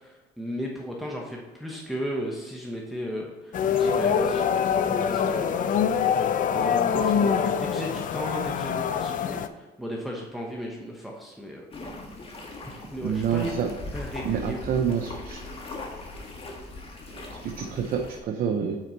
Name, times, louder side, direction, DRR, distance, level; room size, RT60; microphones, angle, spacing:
voice 1, 0.0-5.9 6.2-11.6 12.9-13.6 13.9-14.8, equal, ahead, -2 dB, 1.0 m, -35 dB
sound 1, 3.5-9.5, left 7 dB, 50° left, 0.5 m, -24 dB
sound 2, 11.7-18.2, left 2 dB, 35° left, 1.5 m, -39 dB
voice 2, 13.0-13.7 14.2-15.4 17.4-18.8, right 7 dB, 60° right, 2 dB, 0.8 m, -27 dB
9.0 x 4.4 x 4.1 m, 1.3 s
cardioid pair, 110°, 17 cm